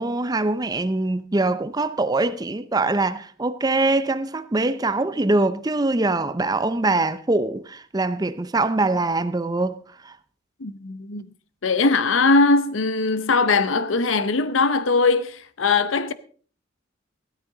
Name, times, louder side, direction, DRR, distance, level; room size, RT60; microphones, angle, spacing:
voice 1, 0.0-9.8 10.0-10.1, right 2 dB, 20° right, 0.6 m, -23 dB
voice 2, 10.6-11.3 11.6-16.1, left 3 dB, 80° left, 0.7 m, -20 dB
16.0 x 13.0 x 3.9 m
head